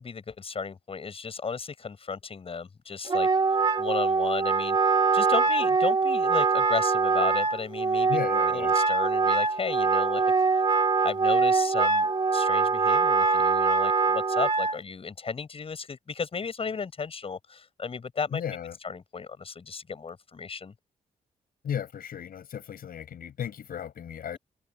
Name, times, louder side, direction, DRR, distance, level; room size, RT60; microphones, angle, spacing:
voice 1, 0.0-3.3 3.8-8.2 8.5-10.2 10.5-10.6 11.0-12.1 12.3-18.4 18.8-20.7, left 5 dB, 40° left, 7.5 m, -34 dB
Wind instrument woodwind instrument, 3.1-14.8, right 4 dB, 30° right, 2.9 m, -23 dB
voice 2, 8.1-8.8 18.3-18.8 21.6-24.4, left 9 dB, 75° left, 6.0 m, -35 dB
wide cardioid pair, 145°, 15 cm